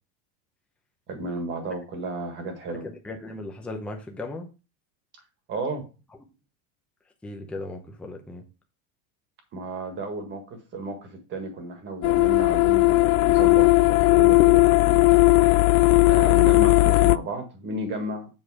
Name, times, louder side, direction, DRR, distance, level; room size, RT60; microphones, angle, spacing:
voice 1, 1.1-2.9 5.5-5.9 9.5-15.0 16.1-18.3, right 2 dB, 25° right, 6 dB, 1.6 m, -33 dB
voice 2, 2.8-4.5 7.2-8.4, left 2 dB, 5° left, 2 dB, 0.6 m, -37 dB
sound 1, 12.0-17.2, left 22 dB, 80° left, 0.5 m, -17 dB
7.5 x 4.7 x 4.8 m, 0.30 s
supercardioid pair, 170°, 40 cm